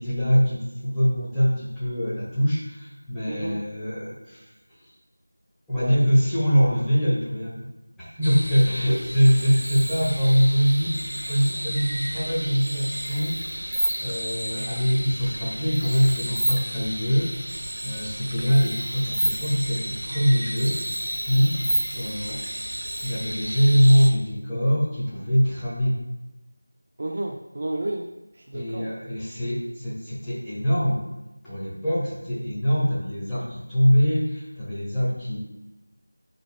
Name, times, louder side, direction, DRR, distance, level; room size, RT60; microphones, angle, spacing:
voice 1, 0.0-4.5 4.8-4.9 5.7-7.5 8.0-10.9 11.3-17.3 17.8-20.8 21.3-21.6 21.9-22.4 23.0-26.0 28.5-31.0 31.4-35.4, equal, 5° left, -15 dB, 1.7 m, -23 dB
voice 2, 3.3-3.6 5.8-6.0 27.0-28.1 28.4-28.9, right 1 dB, 40° right, 1 dB, 0.6 m, -31 dB
sound 1, 8.2-24.1, right 1 dB, 75° right, 1.3 m, -31 dB
12.5 x 5.1 x 2.2 m, 0.97 s
figure-of-eight pair, 170°, 0 cm